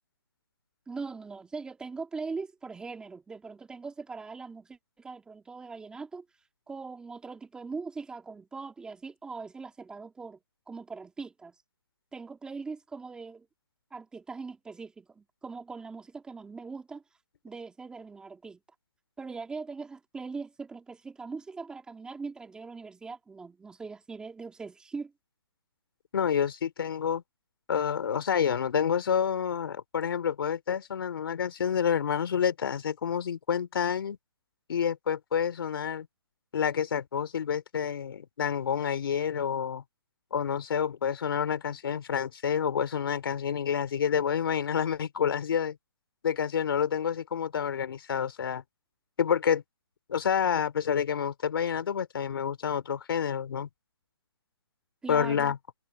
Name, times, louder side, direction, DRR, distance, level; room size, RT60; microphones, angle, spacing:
voice 1, 0.9-6.3 6.7-10.4 10.7-11.6 12.1-13.5 13.9-17.0 17.4-18.6 19.2-25.1 55.0-55.6, right 4 dB, 5° right, 1.9 m, -41 dB
voice 2, 26.1-27.2 27.7-34.2 34.7-36.1 36.5-39.8 40.3-45.8 46.2-48.6 49.2-49.6 50.1-53.7 55.1-55.6, left 7 dB, 60° left, 3.1 m, -28 dB
hypercardioid pair, 155°, 14 cm